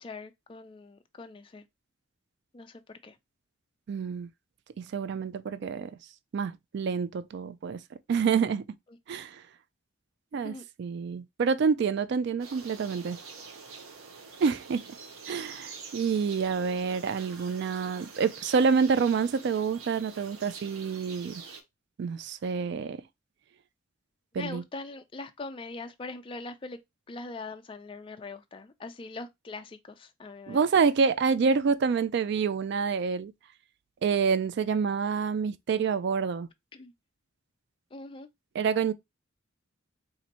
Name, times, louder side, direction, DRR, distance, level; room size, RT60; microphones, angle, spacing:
voice 1, 0.0-1.6 2.5-3.2 8.9-9.0 10.4-10.6 24.4-26.8 27.1-30.7 36.7-36.9 37.9-38.3, left 3 dB, 25° left, 0.3 m, -42 dB
voice 2, 3.9-4.3 4.9-5.9 6.3-7.8 8.1-8.7 9.1-9.4 10.3-10.5 10.8-13.2 14.4-14.8 15.3-21.4 22.0-23.0 24.3-24.6 30.5-33.3 34.0-36.5 38.5-38.9, right 5 dB, 55° right, 0.3 m, -27 dB
sound 1, 12.4-21.6, right 5 dB, 90° right, 0.8 m, -46 dB
4.1 x 2.6 x 2.8 m
head